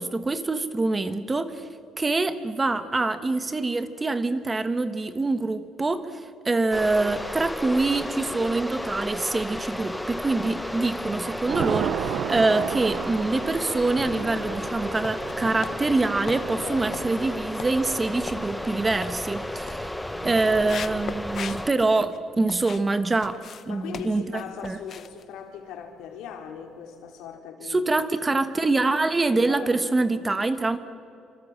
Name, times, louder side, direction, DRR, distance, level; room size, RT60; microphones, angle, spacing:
voice 1, 0.0-1.7 2.0-6.2 6.4-19.9 20.2-23.4 23.7-24.8 27.7-30.8, right 3 dB, 15° right, 11 dB, 1.1 m, -25 dB
sound 1, 6.7-21.7, left 1 dB, 5° left, 0.6 m, -33 dB
Thunder / Rain, 9.6-10.2 10.6-21.7, right 10 dB, 60° right, 0.6 m, -36 dB
sound 2, 12.2-12.9 13.4-22.9 23.2-26.3 26.6-26.9 27.3-27.4, left 7 dB, 45° left, 1.0 m, -41 dB
voice 2, 16.6-17.0 20.0-20.8 23.7-28.1 29.5-29.8, left 8 dB, 90° left, 3 dB, 3.8 m, -40 dB
27.0 x 26.0 x 7.4 m, 2.6 s
cardioid pair, 150°, 0 cm